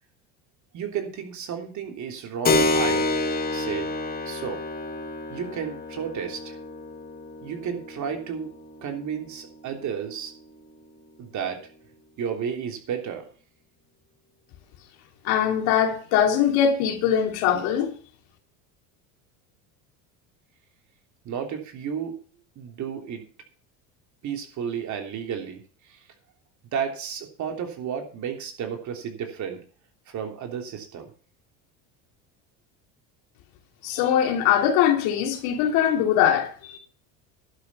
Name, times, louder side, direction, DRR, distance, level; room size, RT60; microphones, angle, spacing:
voice 1, 0.7-3.1 3.5-3.9 4.2-4.6 5.3-6.6 7.4-8.5 8.8-10.3 11.2-11.7 12.2-13.3 21.2-22.1 22.5-23.2 24.2-25.6 25.9-26.0 26.7-29.6 30.1-31.1, right 7 dB, 50° right, 3.3 m, -32 dB
Keyboard (musical), 2.4-10.7, left 2 dB, 25° left, 1.9 m, -29 dB
voice 2, 15.2-17.9 33.8-36.8, left 9 dB, 70° left, 3.0 m, -22 dB
11.5 x 6.7 x 6.9 m
supercardioid pair, 100°, 38 cm